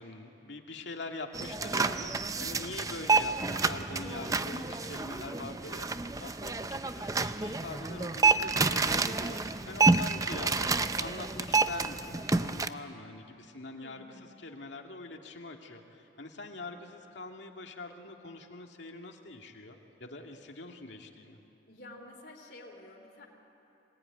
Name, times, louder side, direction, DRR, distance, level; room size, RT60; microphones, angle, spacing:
voice 1, 0.0-14.0 14.4-21.4, left 2 dB, 75° left, 3 dB, 2.1 m, -44 dB
sound 1, 1.3-12.7, right 3 dB, 20° right, 0.5 m, -29 dB
voice 2, 2.7-3.1 13.7-14.4 21.7-23.3, left 1 dB, 55° left, 2 dB, 3.2 m, -51 dB
25.5 x 18.5 x 9.7 m, 2.8 s
head